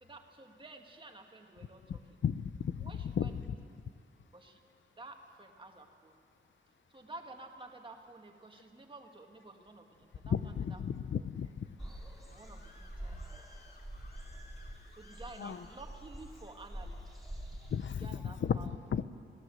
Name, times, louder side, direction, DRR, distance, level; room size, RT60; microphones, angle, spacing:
voice 1, 0.0-2.0 2.8-3.5 4.3-4.6 5.0-6.2 6.9-11.3 12.3-13.5 14.7-17.0 17.8-18.8, right 2 dB, 25° right, 3 dB, 1.8 m, -52 dB
voice 2, 2.2-3.3 10.3-11.7 15.4-15.6 17.7-18.6 18.9-19.0, left 7 dB, 65° left, 14 dB, 0.7 m, -34 dB
Screaming, 11.6-16.1, left 2 dB, 50° left, 3.0 m, -60 dB
sound 1, 11.8-17.9, right 1 dB, ahead, 3.7 m, -46 dB
27.0 x 18.5 x 7.7 m, 2.3 s
wide cardioid pair, 180°, 21 cm